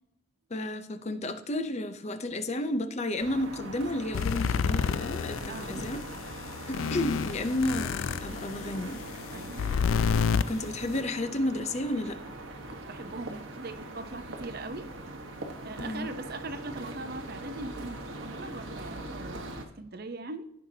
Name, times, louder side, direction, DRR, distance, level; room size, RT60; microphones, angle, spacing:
voice 1, 0.5-6.0 6.7-9.0 10.5-12.2 15.8-16.1, left 1 dB, 35° left, 0.7 m, -32 dB
sound 1, 3.2-19.6, right 2 dB, 75° right, 1.4 m, -42 dB
sound 2, 4.1-11.0, left 6 dB, 80° left, 0.4 m, -30 dB
voice 2, 5.5-5.9 9.3-9.8 12.7-14.9 15.6-20.4, right 2 dB, 50° right, 0.8 m, -41 dB
16.0 x 5.7 x 2.8 m
head